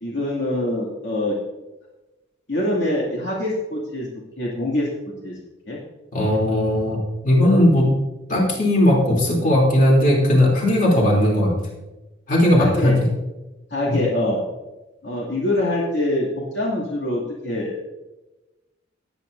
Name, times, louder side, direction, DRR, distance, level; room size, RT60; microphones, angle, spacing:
voice 1, 0.0-1.4 2.5-4.1 4.4-4.9 5.2-5.4 5.7-5.8 12.6-12.9 13.7-14.4 15.0-17.8, left 1 dB, 60° left, -5 dB, 2.5 m, -24 dB
voice 2, 6.1-7.0 7.2-7.9 8.3-11.5 12.3-12.9 13.9-14.0, left 1 dB, 40° left, -3 dB, 3.2 m, -17 dB
18.5 x 9.2 x 2.7 m, 1.1 s
head